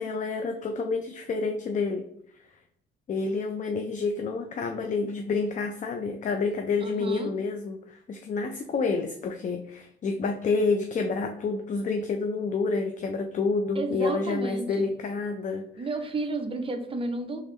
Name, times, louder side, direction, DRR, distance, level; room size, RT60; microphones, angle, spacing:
voice 1, 0.0-2.0 3.1-15.7, left 4 dB, 40° left, 5 dB, 0.4 m, -28 dB
voice 2, 6.8-7.3 13.8-14.9 15.8-17.4, right 2 dB, 25° right, 6 dB, 0.6 m, -32 dB
3.6 x 3.3 x 3.1 m, 0.72 s
cardioid pair, 90°, 20 cm